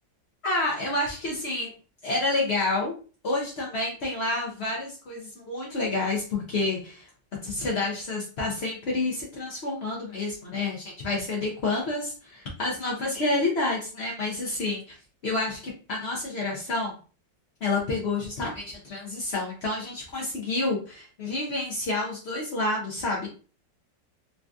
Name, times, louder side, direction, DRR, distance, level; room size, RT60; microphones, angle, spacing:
voice 1, 0.4-1.7 2.0-2.9 3.2-7.1 7.4-14.9 15.2-16.9 17.6-23.3, left 2 dB, 75° left, -3 dB, 0.6 m, -29 dB
3.8 x 2.3 x 2.4 m, 0.38 s
omnidirectional pair, 2.0 m